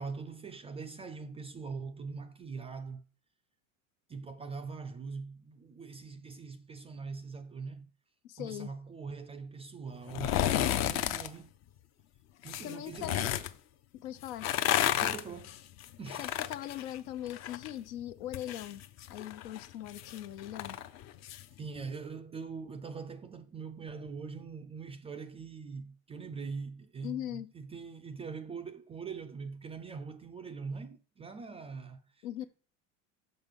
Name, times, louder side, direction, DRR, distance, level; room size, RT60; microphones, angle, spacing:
voice 1, 0.0-3.0 4.1-7.9 8.4-11.5 12.4-13.4 15.0-15.6 16.0-16.5 21.6-32.4, right 5 dB, 15° right, 0.3 m, -42 dB
voice 2, 8.2-8.7 12.6-13.2 13.9-14.5 16.2-20.8 27.0-27.5 32.2-32.4, left 12 dB, 75° left, 0.8 m, -40 dB
sound 1, 10.1-11.3 12.4-13.5 14.3-17.7 18.0-21.4 21.8-21.9, left 11 dB, 40° left, 0.6 m, -32 dB
6.0 x 5.4 x 5.2 m
supercardioid pair, 110°, 42 cm